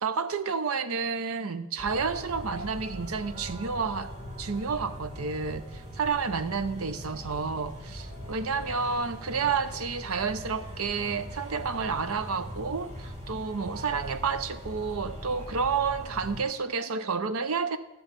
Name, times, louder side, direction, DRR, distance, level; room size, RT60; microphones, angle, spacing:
voice 1, 0.0-4.1 4.4-17.8, right 5 dB, 80° right, 12 dB, 0.7 m, -30 dB
sound 1, 1.8-16.4, equal, 35° right, 2.0 m, -41 dB
13.5 x 6.9 x 5.2 m, 0.94 s
head